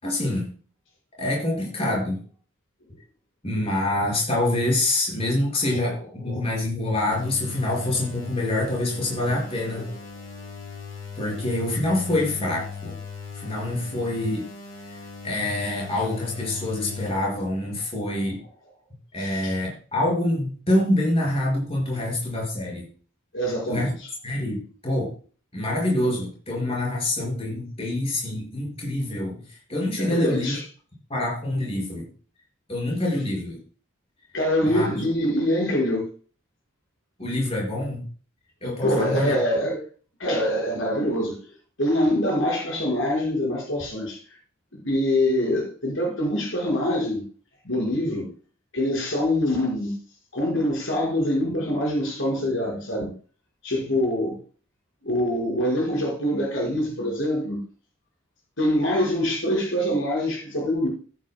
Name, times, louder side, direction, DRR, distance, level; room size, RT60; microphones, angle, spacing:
voice 1, 0.0-0.5 1.2-2.2 3.4-9.9 11.2-13.0 13.3-14.5 15.2-18.4 19.1-22.8 23.7-23.9 24.2-25.1 25.5-30.5 31.1-32.1 32.7-33.6 34.6-34.9 37.2-38.1 38.6-39.4, left 1 dB, 30° left, -3 dB, 5.8 m, -26 dB
sound 1, 7.1-17.1, left 5 dB, 85° left, 3.8 m, -38 dB
voice 2, 19.2-19.6 21.9-22.0 23.3-24.1 30.0-30.6 34.3-36.1 38.8-39.8 40.2-41.5 41.8-44.2 44.7-47.2 47.6-48.3 48.7-50.0 50.3-53.1 53.6-54.4 55.0-57.6 58.6-60.9, left 1 dB, 65° left, -1 dB, 5.3 m, -24 dB
15.0 x 10.0 x 2.3 m, 0.40 s
head